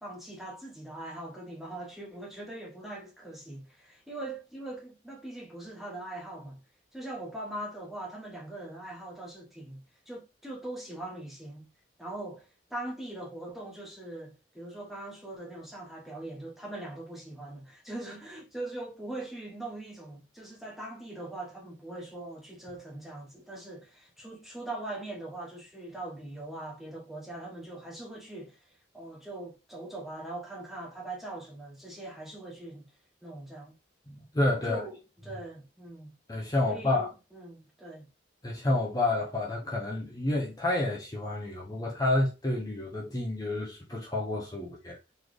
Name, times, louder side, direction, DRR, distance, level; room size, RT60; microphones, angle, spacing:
voice 1, 0.0-6.6 6.9-11.7 12.0-28.6 28.9-32.9 33.2-33.7 34.6-35.0 35.2-36.1 36.6-38.1, right 2 dB, ahead, 1.1 m, -41 dB
voice 2, 34.1-34.8 36.3-37.1 38.4-45.1, left 2 dB, 20° left, 0.8 m, -29 dB
4.0 x 3.3 x 3.1 m
head